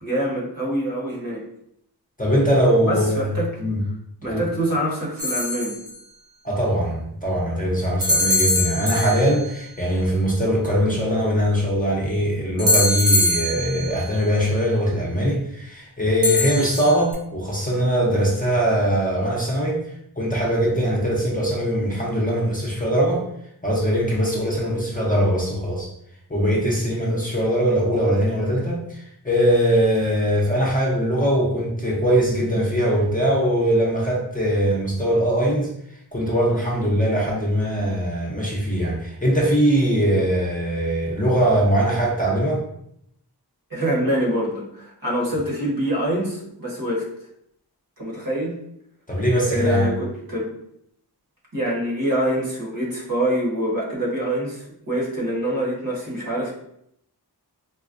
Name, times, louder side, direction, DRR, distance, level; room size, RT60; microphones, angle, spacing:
voice 1, 0.0-1.4 2.8-3.6 4.2-5.8 43.7-47.1 48.0-48.6 49.5-50.5 51.5-56.5, equal, 55° right, -4 dB, 1.2 m, -25 dB
voice 2, 2.2-3.3 3.6-3.8 4.2-4.5 6.4-19.8 20.2-23.2 23.6-25.9 26.3-35.7 36.1-42.6 49.1-49.9, equal, 20° left, -4 dB, 0.7 m, -21 dB
sound 1, 5.2-5.9 8.0-9.5 12.6-14.1 16.2-17.1, left 2 dB, 90° right, 1.0 m, -22 dB
4.0 x 2.2 x 2.5 m, 0.74 s
wide cardioid pair, 90°, 40 cm